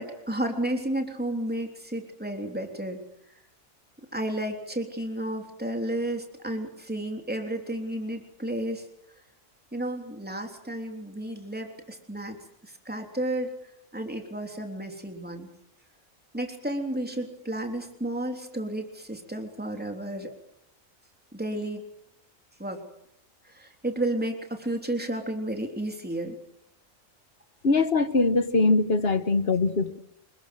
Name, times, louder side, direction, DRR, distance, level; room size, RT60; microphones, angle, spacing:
voice 1, 0.0-3.0 4.1-8.8 9.7-12.4 12.6-13.5 13.9-15.5 16.3-20.3 21.3-21.8 22.6-22.8 23.4-26.4, right 1 dB, 5° right, 4 dB, 3.4 m, -32 dB
voice 2, 27.6-30.0, left 3 dB, 45° left, 11 dB, 1.6 m, -22 dB
27.0 x 21.5 x 7.8 m, 0.75 s
omnidirectional pair, 1.4 m